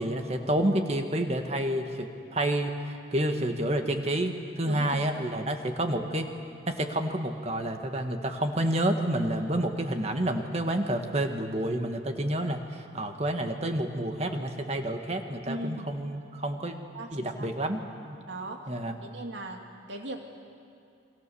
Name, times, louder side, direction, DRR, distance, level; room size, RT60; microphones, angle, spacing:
voice 1, 0.0-6.3 6.7-16.8 17.1-18.2 18.7-19.0, right 1 dB, 35° right, 5 dB, 1.8 m, -29 dB
voice 2, 4.6-5.3 15.4-15.9 16.9-17.5 18.3-18.7 19.0-20.2, right 1 dB, 75° right, 2 dB, 2.8 m, -39 dB
29.0 x 23.5 x 7.1 m, 2.5 s
head